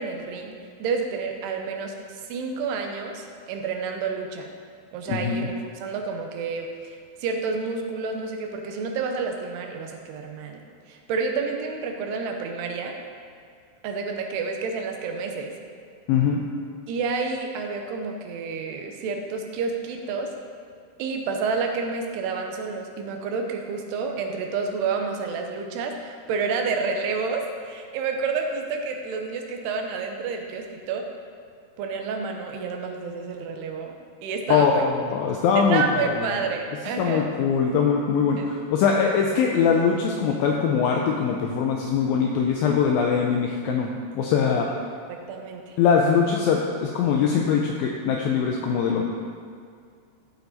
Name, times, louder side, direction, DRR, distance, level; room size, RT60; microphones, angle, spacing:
voice 1, 0.0-4.5 4.9-10.6 10.9-12.9 13.8-15.5 16.9-20.3 21.0-31.0 31.8-34.0 34.2-34.9 35.6-37.3 38.4-38.5 45.1-45.8, right 4 dB, 85° right, 3 dB, 2.8 m, -29 dB
voice 2, 5.1-5.5 16.1-16.4 34.5-36.3 37.0-44.7 45.8-49.0, left 6 dB, 85° left, 0 dB, 2.0 m, -22 dB
13.5 x 4.6 x 4.1 m, 2.3 s
omnidirectional pair, 4.7 m